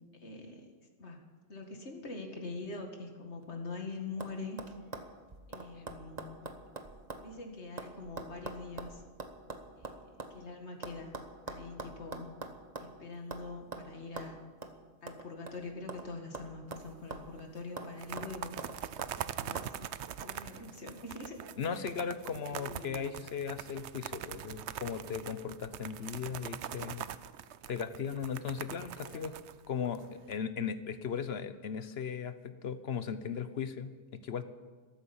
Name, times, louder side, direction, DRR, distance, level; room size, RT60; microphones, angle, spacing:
voice 1, 0.1-0.7 1.0-4.6 5.5-6.4 7.2-9.0 9.8-10.0 10.3-11.2 11.5-12.3 12.8-14.4 15.0-18.5 19.2-19.9 20.2-21.4 21.7-21.9 22.5-23.2 29.0-29.4, left 3 dB, 85° left, 3 dB, 2.3 m, -44 dB
sound 1, 3.4-3.8 4.2-4.3 4.6-7.3 7.5-10.3 10.8-13.0 13.3-13.5 13.7-13.9 14.2-14.3 14.6-14.7 15.1-16.1 16.3-17.4 17.8-17.9 18.2-19.1 19.5-19.7, right 3 dB, 40° right, 1.2 m, -43 dB
sound 2, 16.7-17.1 17.4-17.5 17.8-30.3, right 10 dB, 85° right, 0.9 m, -43 dB
voice 2, 21.6-27.0 27.7-29.3 29.7-34.4, left 7 dB, 70° left, 12 dB, 1.2 m, -37 dB
13.5 x 13.0 x 7.2 m, 1.5 s
omnidirectional pair, 1.1 m